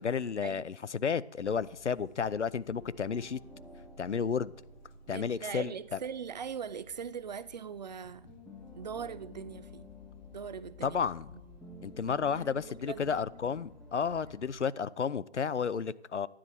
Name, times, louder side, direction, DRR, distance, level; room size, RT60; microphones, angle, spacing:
voice 1, 0.0-3.4 4.0-4.5 5.1-6.0 10.8-11.3 11.8-16.3, left 6 dB, 80° left, 0.7 m, -32 dB
sound 1, 1.4-14.6, left 3 dB, 40° left, 1.2 m, -58 dB
sound 2, 2.7-8.0 8.3-14.6, left 2 dB, ahead, 0.9 m, -53 dB
voice 2, 5.1-8.3 8.7-9.9 10.3-11.0 12.5-13.2 13.4-13.5, right 7 dB, 40° right, 0.5 m, -41 dB
13.5 x 10.0 x 4.0 m
figure-of-eight pair, 135°, 35 cm